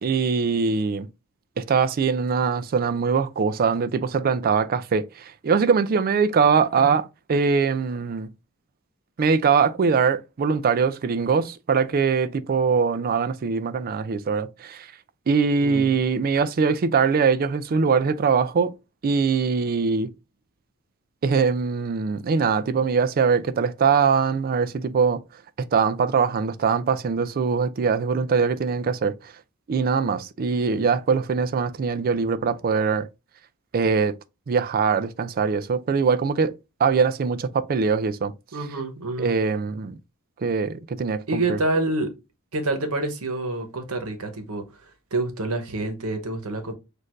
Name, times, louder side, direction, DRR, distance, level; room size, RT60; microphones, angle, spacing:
voice 1, 0.0-1.1 1.6-8.3 9.2-14.9 15.3-18.7 19.0-20.1 21.2-25.2 25.7-29.3 29.7-33.1 33.7-34.1 34.5-36.5 36.8-38.3 39.2-40.0 40.4-41.6, right 5 dB, 40° right, 0.4 m, -22 dB
voice 2, 15.6-15.9 38.5-39.4 41.3-42.1 42.5-44.6 45.1-46.7, right 2 dB, 75° right, 1.0 m, -27 dB
6.3 x 2.5 x 2.5 m
head